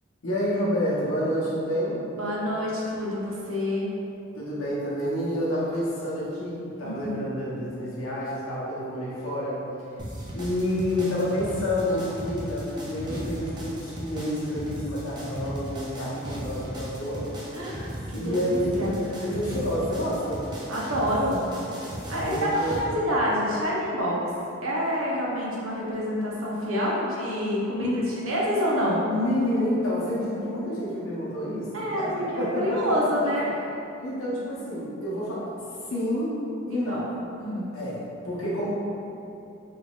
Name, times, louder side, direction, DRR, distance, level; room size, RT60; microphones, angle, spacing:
voice 1, 0.2-2.0 4.4-9.6 10.3-17.4 18.1-18.8 19.2-20.5 22.1-22.8 27.8-28.0 29.1-33.1 34.0-35.5 35.9-36.4 36.7-37.1 37.7-38.7, equal, 85° left, -7 dB, 0.9 m, -29 dB
voice 2, 2.1-3.9 6.8-7.2 13.1-13.3 17.5-18.4 18.8-18.9 20.7-21.4 22.1-24.2 24.6-27.9 28.2-29.0 31.7-33.5 36.7-37.1 37.4-37.7, equal, 80° right, -5 dB, 0.8 m, -27 dB
sound 1, 10.0-22.8, equal, 20° right, 0.5 m, -36 dB
3.7 x 3.2 x 2.4 m, 2.7 s
head